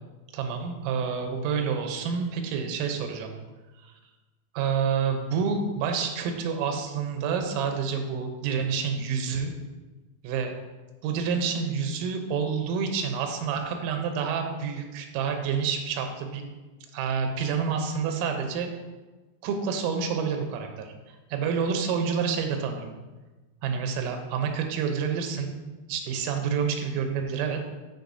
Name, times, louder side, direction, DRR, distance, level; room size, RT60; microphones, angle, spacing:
voice 1, 0.3-3.3 3.8-3.9 4.6-9.5 10.2-10.5 11.0-16.4 16.9-18.7 19.4-22.9 23.6-25.6 25.9-27.6, right 6 dB, 90° right, 4 dB, 3.5 m, -28 dB
13.5 x 4.8 x 2.7 m, 1.2 s
omnidirectional pair, 5.7 m